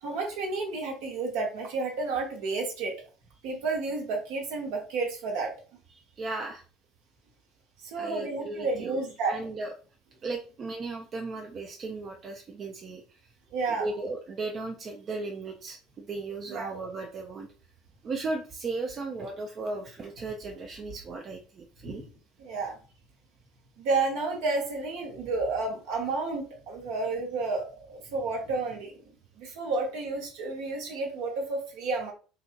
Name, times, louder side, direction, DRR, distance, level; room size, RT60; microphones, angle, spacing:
voice 1, 0.0-2.9 3.4-5.5 7.8-9.4 13.5-13.9 16.5-16.8 21.8-22.0 22.4-22.8 23.8-28.9 29.4-32.1, right 3 dB, 65° right, 1 dB, 0.8 m, -31 dB
voice 2, 5.9-6.6 8.0-9.7 10.2-13.0 13.7-17.5 18.0-22.0, right 3 dB, 40° right, 3 dB, 0.4 m, -36 dB
2.8 x 2.5 x 2.4 m, 0.37 s
figure-of-eight pair, 65°, 0 cm